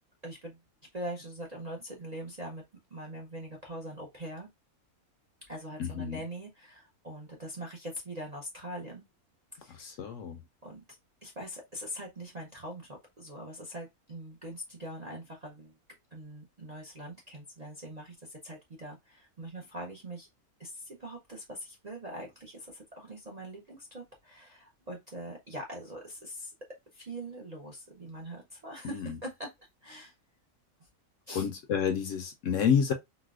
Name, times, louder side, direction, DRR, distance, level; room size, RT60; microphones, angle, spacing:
voice 1, 0.2-0.6 0.9-2.6 2.9-4.5 5.5-9.0 9.5-9.9 10.6-15.8 16.1-20.3 20.6-26.5 26.9-29.5 29.8-30.1 31.3-31.5, right 1 dB, 40° right, 0.5 m, -42 dB
voice 2, 5.8-6.2 9.7-10.4 28.8-29.2 31.3-32.9, left 7 dB, 70° left, 0.8 m, -29 dB
4.0 x 2.2 x 2.3 m
omnidirectional pair, 1.6 m